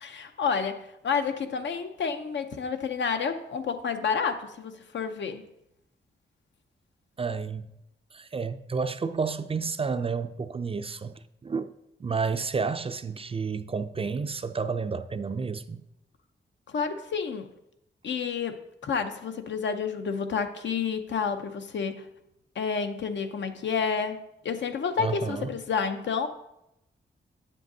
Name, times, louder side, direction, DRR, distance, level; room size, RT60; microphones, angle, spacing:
voice 1, 0.0-5.4 16.7-17.5 18.0-22.1 22.6-26.3, left 6 dB, 75° left, 0.7 m, -30 dB
voice 2, 7.2-7.7 8.1-11.7 12.0-15.8 25.0-25.5, right 5 dB, 30° right, 0.4 m, -31 dB
8.6 x 7.4 x 2.7 m
wide cardioid pair, 95°, 19 cm